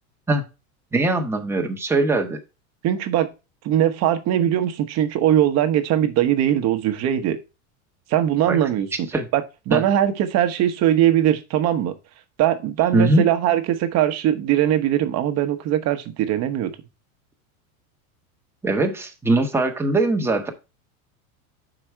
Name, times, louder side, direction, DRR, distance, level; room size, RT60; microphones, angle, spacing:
voice 1, 0.9-2.4 8.5-8.6 9.1-9.3 9.7-9.8 12.9-13.3 18.6-20.5, right 2 dB, 5° right, 1.0 m, -21 dB
voice 2, 2.8-3.3 3.6-7.4 8.1-9.1 9.3-11.9 12.4-16.7, right 11 dB, 35° right, 1.0 m, -20 dB
6.0 x 5.0 x 4.4 m
supercardioid pair, 140°, 44 cm